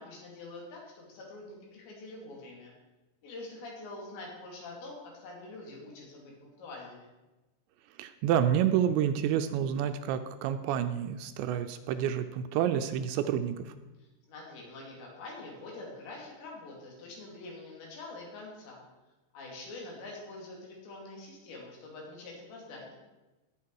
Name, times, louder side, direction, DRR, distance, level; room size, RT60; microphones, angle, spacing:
voice 1, 0.0-2.7 3.2-7.1 14.0-18.8 19.3-23.0, left 2 dB, 70° left, -2 dB, 4.8 m, -45 dB
voice 2, 8.0-13.7, right 9 dB, 80° right, 9 dB, 2.7 m, -29 dB
17.5 x 6.6 x 4.7 m, 1.1 s
omnidirectional pair, 5.3 m